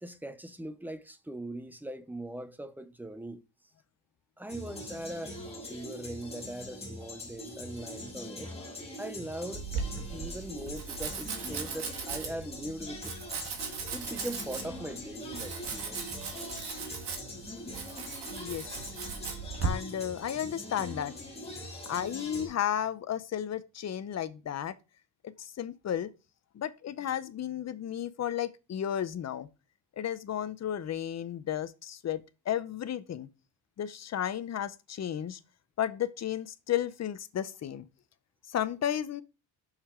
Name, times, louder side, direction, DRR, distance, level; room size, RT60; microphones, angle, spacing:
voice 1, 0.0-3.4 4.4-5.3 5.6-8.5 9.0-9.6 9.9-13.1 13.9-16.0, right 1 dB, 5° right, 0.5 m, -40 dB
sound 1, 4.5-22.5, left 1 dB, 15° left, 1.9 m, -43 dB
Domestic sounds home sounds, 9.5-19.7, right 6 dB, 65° right, 1.7 m, -38 dB
voice 2, 18.3-19.0 19.6-21.1 21.9-24.7 25.2-26.1 26.5-29.5 30.0-32.2 32.5-33.3 33.8-35.4 35.8-37.9 38.5-39.2, left 10 dB, 40° left, 0.6 m, -33 dB
6.7 x 5.8 x 3.6 m
cardioid pair, 150°, 43 cm